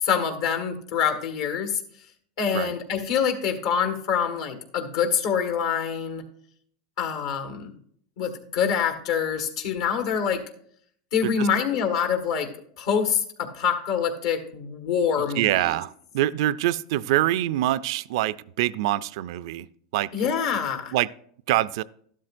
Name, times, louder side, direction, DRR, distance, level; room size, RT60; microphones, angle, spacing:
voice 1, 0.0-1.8 2.4-6.2 7.0-7.7 8.2-10.4 11.1-12.5 12.8-15.7 20.1-20.9, left 7 dB, 70° left, 6 dB, 1.6 m, -25 dB
voice 2, 15.4-19.7 19.9-20.1 20.9-21.1 21.5-21.8, right 14 dB, 70° right, 17 dB, 0.4 m, -25 dB
12.5 x 12.0 x 2.5 m, 0.63 s
supercardioid pair, 135°, 3 cm